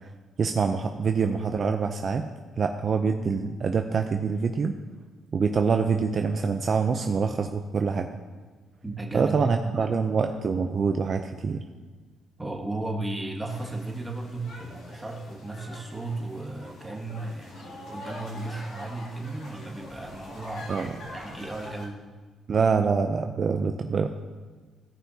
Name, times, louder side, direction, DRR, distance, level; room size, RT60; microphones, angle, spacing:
voice 1, 0.4-2.3 2.6-4.7 5.3-8.1 9.1-11.6 20.7-20.9 22.5-24.1, right 5 dB, 45° right, 5 dB, 0.5 m, -25 dB
voice 2, 8.8-9.9 12.4-20.7 21.1-22.0, right 2 dB, 10° right, 1 dB, 1.5 m, -35 dB
sound 1, 13.5-21.9, left 1 dB, 80° left, 2.6 m, -44 dB
16.0 x 5.7 x 2.8 m, 1.4 s
cardioid pair, 90°, 0 cm